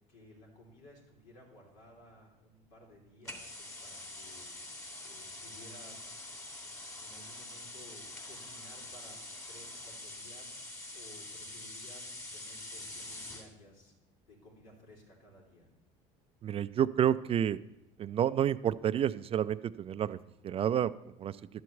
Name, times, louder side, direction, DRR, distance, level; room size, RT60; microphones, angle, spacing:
voice 1, 0.1-6.2 7.0-9.2 9.5-13.9 14.3-15.7, left 1 dB, 85° left, -2 dB, 3.4 m, -57 dB
sound 1, 3.2-13.5, left 2 dB, 20° left, 2.0 m, -45 dB
voice 2, 16.4-17.6 18.0-20.2 20.4-20.9 21.2-21.4, right 10 dB, 40° right, 14 dB, 0.4 m, -29 dB
11.0 x 4.6 x 8.1 m, 0.89 s
supercardioid pair, 85°, 16 cm